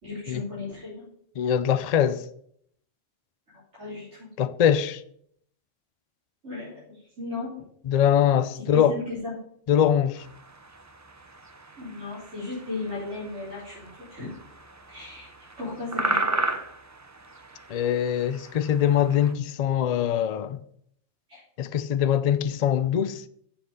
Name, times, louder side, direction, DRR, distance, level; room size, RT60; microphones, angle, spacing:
voice 1, 0.0-1.1 3.8-4.3 6.4-7.5 8.7-9.3 11.8-14.3 14.9-15.3 15.6-16.4 21.3-21.4, left 3 dB, 70° right, 3.9 m, -36 dB
voice 2, 1.4-2.2 4.4-5.0 7.8-9.0 9.7-10.3 17.7-20.6 21.6-23.3, left 9 dB, 70° left, 0.3 m, -23 dB
sound 1, 10.2-19.3, right 2 dB, 25° right, 0.4 m, -35 dB
7.6 x 5.8 x 6.5 m
omnidirectional pair, 1.3 m